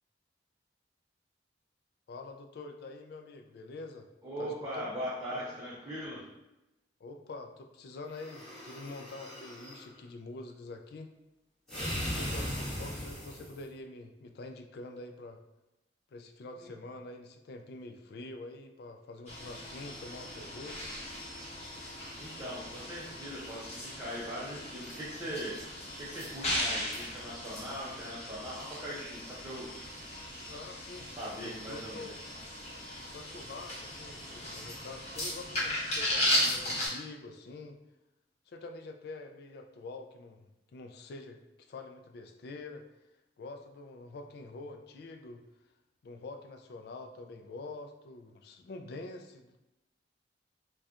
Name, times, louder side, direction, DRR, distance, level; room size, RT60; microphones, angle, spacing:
voice 1, 2.1-4.1 4.4-4.9 5.3-5.6 7.0-11.1 11.7-15.4 16.1-20.9 30.4-31.1 31.4-32.2 33.1-37.8 38.5-42.8 43.4-45.4 46.0-49.6, left 3 dB, 60° left, 5 dB, 0.3 m, -46 dB
voice 2, 4.2-6.2 16.6-16.7 22.2-25.6 26.0-29.7 31.2-32.1, equal, 20° right, -8 dB, 0.5 m, -40 dB
sound 1, 8.1-9.8 11.7-13.6, equal, 5° left, 1.0 m, -38 dB
sound 2, 19.3-36.9, left 1 dB, 35° left, 1.0 m, -37 dB
4.1 x 2.3 x 2.4 m, 0.95 s
head